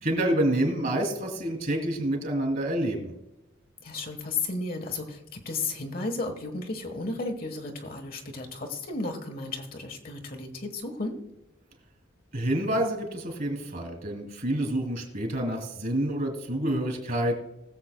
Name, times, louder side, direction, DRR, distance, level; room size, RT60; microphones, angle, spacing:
voice 1, 0.0-3.1 12.3-17.3, right 1 dB, 45° right, 3 dB, 3.0 m, -28 dB
voice 2, 3.8-11.1, left 3 dB, 45° left, 3 dB, 1.3 m, -34 dB
20.5 x 7.6 x 2.2 m, 0.87 s
head